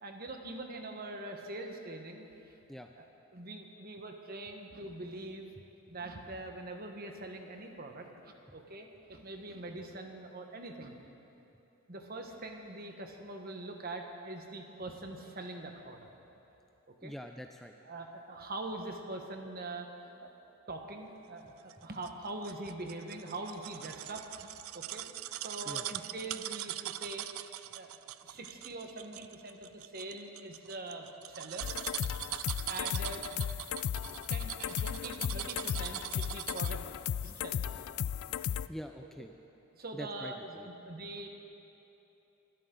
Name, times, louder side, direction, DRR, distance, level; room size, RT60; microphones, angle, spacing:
voice 1, 0.0-2.3 3.0-3.1 3.3-5.5 5.9-11.0 11.9-16.1 17.0-17.1 17.8-20.3 20.7-25.1 25.4-27.3 27.7-27.9 28.2-31.7 32.7-33.4 34.2-36.9 37.2-37.6 38.3-38.6 39.7-41.3, right 2 dB, 45° right, 3 dB, 1.3 m, -43 dB
voice 2, 17.0-17.7 25.7-25.8 38.7-39.3 39.9-40.7, equal, ahead, 4 dB, 0.4 m, -44 dB
sound 1, 21.7-36.9 37.2-37.3, right 14 dB, 80° right, 0.4 m, -42 dB
sound 2, 31.6-38.7, left 9 dB, 80° left, 0.3 m, -35 dB
24.0 x 12.5 x 3.9 m, 3.0 s
head